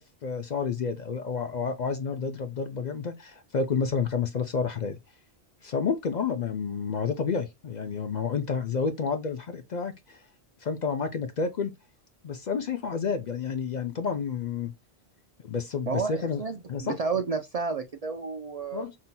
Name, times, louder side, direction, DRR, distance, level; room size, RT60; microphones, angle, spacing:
voice 1, 0.0-5.0 5.6-10.2 10.6-11.7 12.2-14.7 15.4-16.4 16.7-16.9 18.7-19.0, left 5 dB, 55° left, 0.6 m, -30 dB
voice 2, 15.9-18.9, right 4 dB, 50° right, 0.5 m, -31 dB
5.6 x 2.6 x 2.2 m
omnidirectional pair, 1.1 m